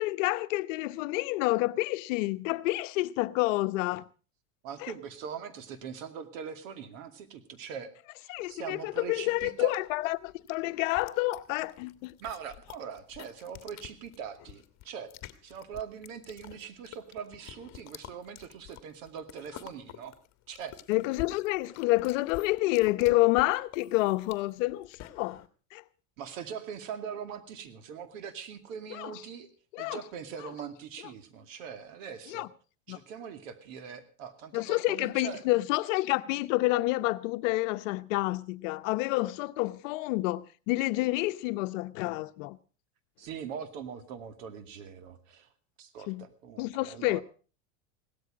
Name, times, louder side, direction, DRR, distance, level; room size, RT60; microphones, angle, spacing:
voice 1, 0.0-4.0 4.8-4.9 8.3-12.1 20.9-25.4 25.7-25.8 28.9-29.1 29.7-30.0 32.3-32.5 32.9-33.0 34.5-42.6 46.1-46.2 46.6-47.2, left 20 dB, 65° left, 0.9 m, -29 dB
voice 2, 4.6-7.9 8.2-9.7 12.2-15.1 15.4-20.1 20.5-20.7 26.2-29.5 29.8-32.5 32.9-35.4 43.2-45.5 45.8-47.2, right 7 dB, 70° right, 2.4 m, -42 dB
sound 1, 8.4-25.5, left 14 dB, 40° left, 1.5 m, -49 dB
17.0 x 13.0 x 5.1 m
supercardioid pair, 120°, 41 cm